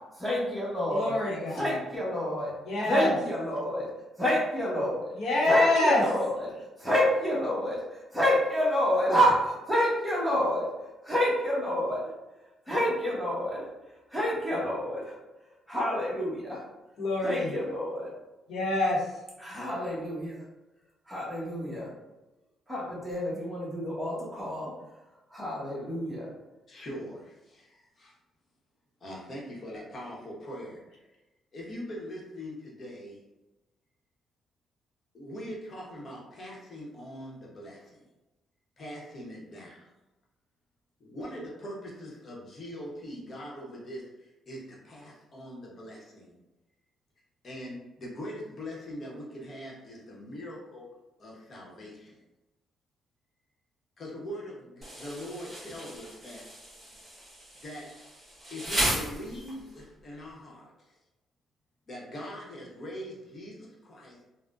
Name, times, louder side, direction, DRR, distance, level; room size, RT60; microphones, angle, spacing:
voice 1, 0.2-1.2 1.5-2.5 2.9-3.9 4.2-5.0 5.5-6.5 6.8-10.7 11.0-12.0 12.7-13.6 14.1-15.1 15.7-16.6 17.2-18.1 19.4-20.3 21.1-21.9 22.7-24.7 25.3-26.3, equal, ahead, -7 dB, 1.1 m, -28 dB
voice 2, 0.9-1.8 2.6-3.1 5.1-6.1 17.0-17.6 18.5-19.0, left 2 dB, 70° left, -3 dB, 0.9 m, -26 dB
voice 3, 26.7-28.1 29.0-30.8 31.5-33.2 35.1-38.0 38.8-39.8 41.0-44.0 44.5-46.4 47.4-50.9 51.2-52.2 54.0-56.4 57.6-57.9 58.5-60.7 61.9-64.2, equal, 45° left, -3 dB, 1.0 m, -42 dB
Insect, 54.8-59.8, equal, 15° right, 1.5 m, -35 dB
3.5 x 2.1 x 2.5 m, 1.0 s
cardioid pair, 90°, 0 cm